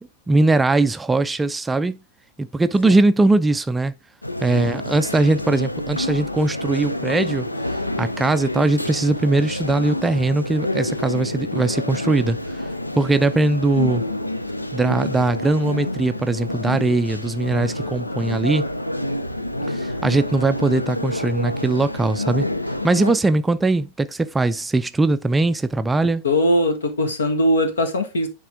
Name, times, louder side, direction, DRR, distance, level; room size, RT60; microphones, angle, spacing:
voice 1, 0.3-2.0 2.4-3.9 4.4-7.5 8.0-12.4 12.9-14.1 14.7-18.6 19.7-22.5 22.8-26.2, right 2 dB, 10° right, 0.4 m, -20 dB
sound 1, 4.2-23.2, left 1 dB, 85° left, 0.5 m, -28 dB
voice 2, 26.2-28.3, left 1 dB, 70° left, 1.5 m, -20 dB
9.9 x 3.6 x 3.6 m
figure-of-eight pair, 90°, 0 cm